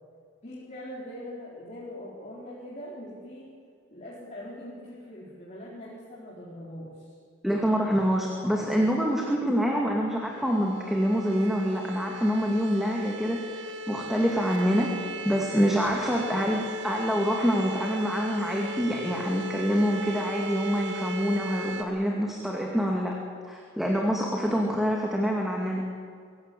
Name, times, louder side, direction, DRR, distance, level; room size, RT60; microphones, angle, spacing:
voice 1, 0.4-3.5 3.9-7.2 8.5-8.9, left 1 dB, 35° left, -6 dB, 4.3 m, -42 dB
voice 2, 7.4-13.6 13.9-14.9 15.2-23.1 23.5-25.8, equal, ahead, -1 dB, 2.4 m, -26 dB
sound 1, 10.3-21.8, equal, 65° right, 2.3 m, -37 dB
25.0 x 16.0 x 8.6 m, 2.1 s
head